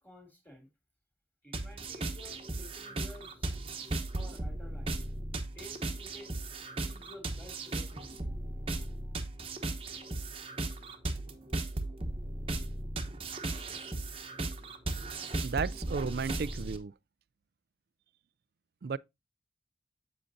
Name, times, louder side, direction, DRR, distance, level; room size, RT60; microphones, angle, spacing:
voice 1, 0.0-0.7 1.4-3.5 4.1-5.0 5.5-6.3 6.8-9.5, left 1 dB, 10° left, 2.4 m, -53 dB
sound 1, 1.5-16.8, right 2 dB, 30° right, 1.0 m, -36 dB
voice 2, 15.4-16.9 18.8-19.0, right 5 dB, 55° right, 0.4 m, -34 dB
7.7 x 7.0 x 2.6 m
head